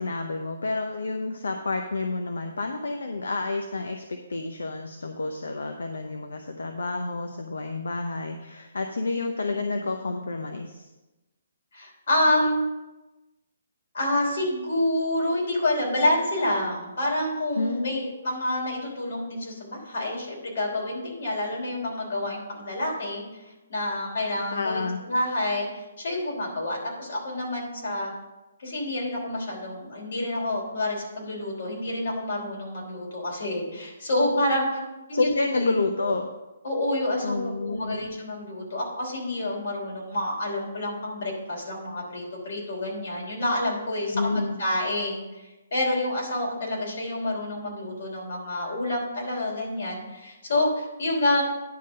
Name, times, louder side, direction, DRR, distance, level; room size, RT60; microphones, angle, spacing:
voice 1, 0.0-10.9 17.6-18.0 24.5-25.0 35.1-36.3 37.2-38.0 44.1-44.6, left 3 dB, 85° left, 5 dB, 0.7 m, -29 dB
voice 2, 11.7-12.6 13.9-28.1 28.6-34.8 35.1-36.2 36.6-51.4, left 1 dB, 65° left, -2 dB, 3.4 m, -28 dB
10.0 x 3.8 x 6.7 m, 1.1 s
hypercardioid pair, 145°, 0 cm